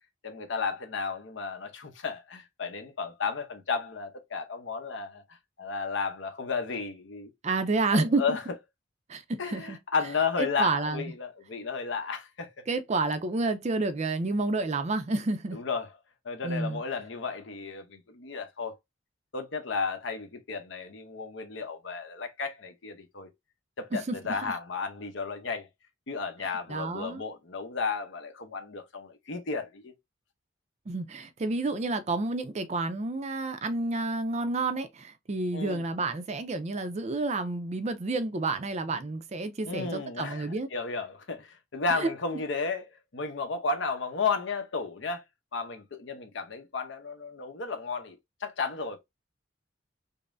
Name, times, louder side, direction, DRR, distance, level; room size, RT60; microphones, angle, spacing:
voice 1, 0.2-5.2 5.6-7.3 7.9-8.4 9.4-12.7 15.5-15.9 16.2-18.7 19.3-23.3 23.8-25.7 26.1-29.9 35.5-35.8 39.7-42.9 43.1-45.2 45.5-49.0, left 4 dB, 65° left, 0.8 m, -33 dB
voice 2, 7.4-8.4 9.1-9.8 10.4-11.0 12.7-15.6 16.4-16.8 23.9-24.2 24.4-24.5 26.7-27.2 30.9-40.7 42.0-42.1, right 3 dB, 35° right, 0.4 m, -30 dB
5.2 x 2.0 x 2.6 m
head